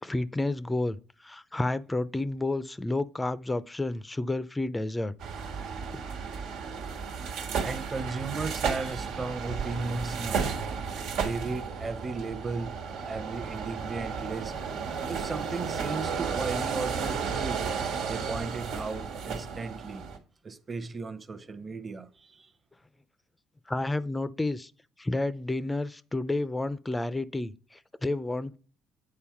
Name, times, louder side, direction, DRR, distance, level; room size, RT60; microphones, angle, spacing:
voice 1, 0.0-5.1 5.9-6.0 23.7-24.7 25.0-28.6, left 2 dB, 10° left, 0.5 m, -30 dB
sound 1, 5.2-20.2, right 6 dB, 85° right, 1.6 m, -33 dB
voice 2, 7.6-10.6 11.1-12.8 13.0-14.6 15.1-17.7 18.1-20.1 20.4-22.5, right 3 dB, 25° right, 0.9 m, -36 dB
8.7 x 4.3 x 5.8 m
cardioid pair, 130°, 0 cm